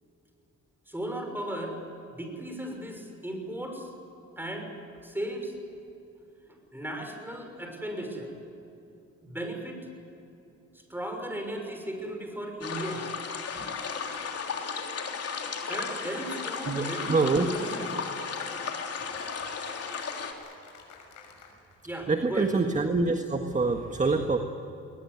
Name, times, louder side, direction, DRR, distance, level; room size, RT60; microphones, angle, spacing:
voice 1, 0.9-1.8 2.1-3.9 4.4-4.7 5.0-5.5 6.7-8.3 9.2-9.8 10.7-13.1 13.6-13.7 15.7-18.0 21.8-22.5, right 1 dB, 5° right, 4 dB, 6.2 m, -36 dB
sound 1, 12.6-20.3, left 5 dB, 50° left, 3.5 m, -35 dB
Cheering / Applause, 15.1-21.8, left 5 dB, 90° left, 6.1 m, -52 dB
voice 2, 16.7-17.5 22.1-24.4, right 3 dB, 25° right, 5 dB, 1.7 m, -25 dB
21.0 x 20.5 x 9.6 m, 2.8 s
cardioid pair, 90°, 30 cm